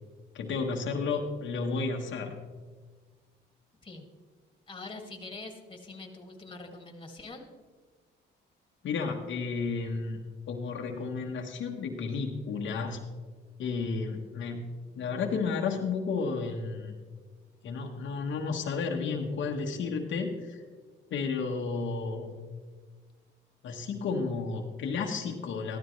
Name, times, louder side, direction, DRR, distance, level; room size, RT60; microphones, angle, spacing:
voice 1, 0.3-2.3 8.8-10.2 10.5-13.0 13.6-14.7 14.9-17.0 17.6-20.6 21.1-22.3 23.6-25.8, left 4 dB, 70° left, 2 dB, 1.2 m, -32 dB
voice 2, 4.7-7.5, left 3 dB, 25° left, 4 dB, 2.1 m, -44 dB
14.5 x 12.5 x 3.2 m, 1.5 s
cardioid pair, 90°, 20 cm